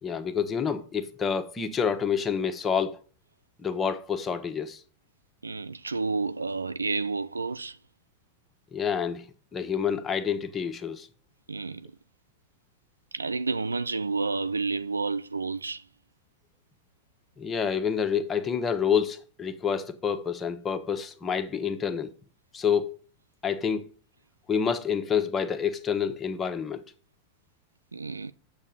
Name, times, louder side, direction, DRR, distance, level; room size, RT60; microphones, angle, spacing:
voice 1, 0.0-3.0 3.6-4.8 8.7-9.3 9.5-11.1 17.4-22.1 22.5-23.0 23.4-23.9 24.5-26.8, left 7 dB, 20° left, 1.2 m, -28 dB
voice 2, 5.4-7.8 11.5-11.9 13.1-15.8 27.9-28.3, right 4 dB, 80° right, 0.4 m, -30 dB
8.8 x 7.2 x 4.0 m
figure-of-eight pair, 90°, 0 cm